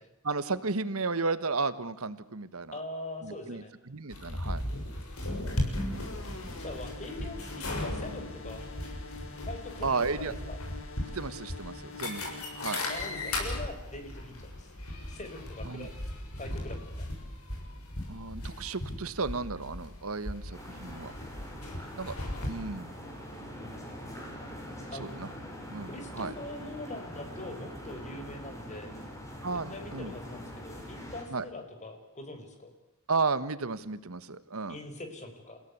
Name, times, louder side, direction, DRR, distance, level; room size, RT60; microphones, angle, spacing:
voice 1, 0.2-2.8 3.2-4.6 9.8-10.3 11.1-12.8 15.6-15.9 18.1-21.1 22.0-22.2 22.5-22.9 25.0-25.3 25.7-26.3 29.4-30.1 31.3-31.4 33.1-34.8, right 4 dB, 75° right, 14 dB, 1.4 m, -33 dB
voice 2, 2.7-3.7 5.9-8.6 9.4-10.6 12.9-14.7 15.1-15.9 16.4-17.1 24.9-25.2 25.9-28.9 29.5-32.7 34.7-35.6, left 2 dB, 35° left, 6 dB, 4.6 m, -43 dB
sound 1, 4.1-22.5, left 1 dB, 85° left, 6.9 m, -37 dB
sound 2, 5.9-13.6, left 3 dB, 65° left, 4.6 m, -46 dB
sound 3, 20.5-31.2, equal, 15° left, 6.1 m, -43 dB
29.5 x 17.0 x 8.2 m, 0.87 s
head